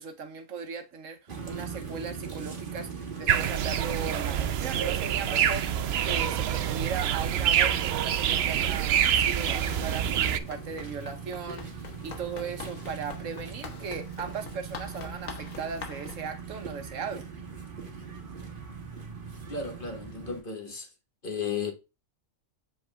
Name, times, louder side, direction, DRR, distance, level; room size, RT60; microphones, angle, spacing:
voice 1, 0.0-17.3, right 5 dB, 75° right, 1.4 m, -38 dB
sound 1, 1.3-20.4, right 6 dB, 40° right, 1.5 m, -40 dB
sound 2, 3.3-10.4, right 9 dB, 60° right, 0.7 m, -26 dB
Run, 9.3-16.3, left 5 dB, 85° left, 1.5 m, -45 dB
voice 2, 19.5-20.9 21.2-21.7, left 5 dB, 40° left, 1.6 m, -34 dB
7.7 x 4.1 x 3.4 m
omnidirectional pair, 1.3 m